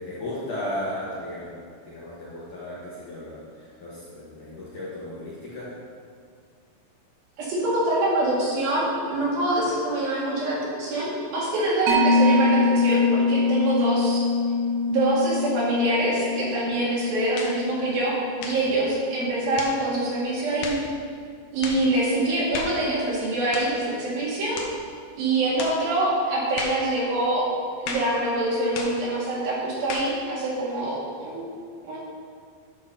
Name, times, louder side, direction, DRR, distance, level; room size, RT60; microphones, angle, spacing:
voice 1, 0.0-5.7 18.7-18.8, left 1 dB, 60° left, -8 dB, 2.3 m, -35 dB
voice 2, 7.4-14.3 14.9-18.2 18.4-20.8 21.5-24.6 25.2-27.5 27.8-31.5 31.8-32.0, right 2 dB, 60° right, -7 dB, 3.5 m, -25 dB
Mallet percussion, 11.9-18.9, left 3 dB, 80° right, 3.3 m, -24 dB
Belt Whip, 17.4-17.6 18.4-18.7 19.6-19.8 20.6-20.9 21.6-21.9 22.5-22.8 23.5-23.8 24.6-24.8 25.6-25.8 26.6-26.9 27.9-28.2 28.8-29.0 29.9-30.2, left 4 dB, 75° left, 2.7 m, -34 dB
10.5 x 4.6 x 5.7 m, 2.2 s
omnidirectional pair, 5.1 m